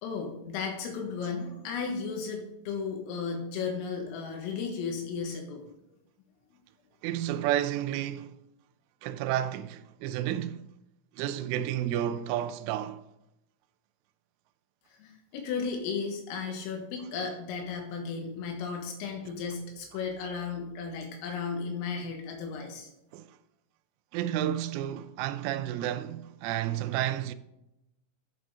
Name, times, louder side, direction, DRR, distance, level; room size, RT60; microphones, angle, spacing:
voice 1, 0.0-5.6 14.9-22.9, left 5 dB, 80° left, 4.1 m, -35 dB
voice 2, 7.0-8.4 9.0-10.7 11.2-13.0 23.1-23.3 24.1-27.3, right 12 dB, 80° right, 2.9 m, -31 dB
11.5 x 9.1 x 3.7 m
omnidirectional pair, 5.9 m